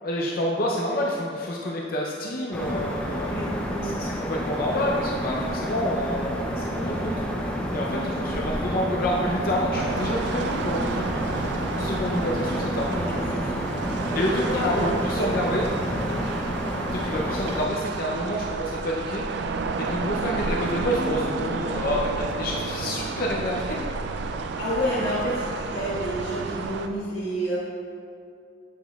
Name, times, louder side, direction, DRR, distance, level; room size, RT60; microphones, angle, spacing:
voice 1, 0.0-3.4 3.8-7.1 7.7-13.2 14.1-15.7 16.9-23.8, left 1 dB, 50° left, -2 dB, 0.5 m, -28 dB
sound 1, 2.5-17.7, equal, 5° left, 0.6 m, -29 dB
voice 2, 3.2-3.9 6.9-7.2 7.9-8.1 13.1-14.9 15.2-15.6 16.0-16.2 24.6-27.6, equal, 80° left, -8 dB, 1.4 m, -30 dB
sound 2, 9.7-26.9, right 4 dB, 60° right, 0.3 m, -31 dB
sound 3, 19.4-26.7, equal, 30° right, 1.0 m, -43 dB
7.8 x 6.2 x 2.3 m, 2.5 s
head